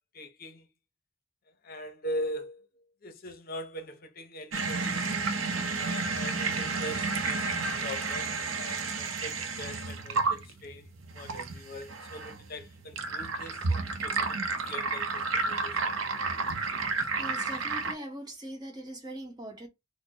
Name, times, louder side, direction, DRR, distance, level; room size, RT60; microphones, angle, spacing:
voice 1, 0.1-0.7 1.6-5.1 5.8-10.9 11.1-15.9, equal, 50° left, 0.7 m, -41 dB
sound 1, 4.5-17.9, right 4 dB, 85° right, 0.7 m, -31 dB
voice 2, 17.2-19.7, right 1 dB, 20° right, 1.1 m, -41 dB
4.2 x 2.1 x 2.8 m
head